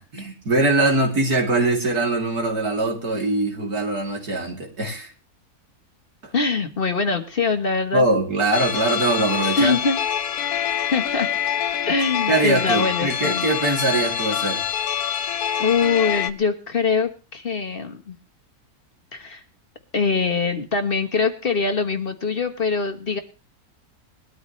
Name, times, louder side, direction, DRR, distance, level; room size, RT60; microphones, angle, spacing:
voice 1, 0.0-5.1 7.9-9.7 12.3-14.6, right 2 dB, 85° right, 1 dB, 3.6 m, -22 dB
voice 2, 6.3-8.1 9.6-10.0 10.9-11.3 11.9-13.5 15.6-18.1 19.1-19.4 19.9-23.2, left 4 dB, 40° left, 6 dB, 1.4 m, -23 dB
sound 1, 8.5-16.3, left 9 dB, 80° left, 1.4 m, -25 dB
20.5 x 13.0 x 3.2 m, 0.33 s
omnidirectional pair, 1.6 m